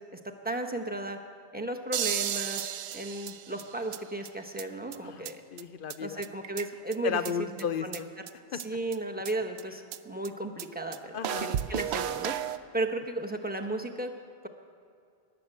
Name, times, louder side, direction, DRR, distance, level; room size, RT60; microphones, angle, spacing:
voice 1, 0.4-1.2 1.5-5.4 6.0-7.2 7.8-8.0 8.5-12.4 12.7-14.1, right 2 dB, 10° right, 3 dB, 1.0 m, -34 dB
sound 1, 1.9-4.0 4.2-4.3 4.6-4.7 4.9-5.0 5.2-5.3 5.6-5.7 5.9-6.0 6.2-6.9 7.2-7.3 7.6-7.7 7.9-8.0 8.3-8.4 8.6-8.7 8.9-9.0 9.2-9.3 9.6-9.7 9.9-10.0 10.2-10.3 10.6-10.7 10.9-11.0 11.2-12.6, right 10 dB, 85° right, 0.8 m, -33 dB
voice 2, 5.0-6.2 7.0-8.1 8.5-8.6 11.1-11.6, left 7 dB, 60° left, 12 dB, 0.7 m, -34 dB
20.0 x 7.5 x 7.8 m, 2.4 s
omnidirectional pair, 1.1 m